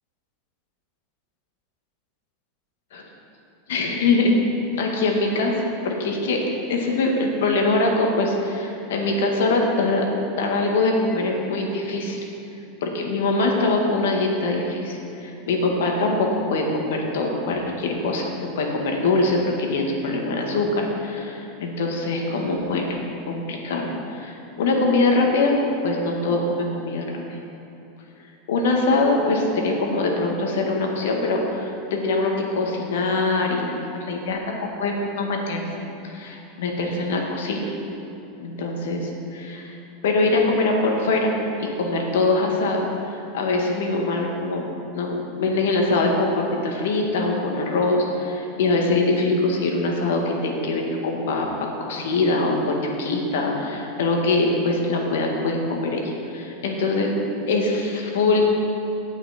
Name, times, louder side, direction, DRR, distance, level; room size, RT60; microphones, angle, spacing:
voice 1, 3.7-4.4 4.8-10.1 10.3-12.2 12.8-22.9 23.3-25.5 25.8-27.4 28.5-33.7 33.9-37.7 38.4-39.8 40.0-41.3 41.6-44.7 44.9-51.5 51.8-57.1 57.5-58.4, left 2 dB, 80° left, 1 dB, 1.8 m, -23 dB
17.0 x 5.9 x 4.3 m, 2.9 s
hypercardioid pair, 105°, 0 cm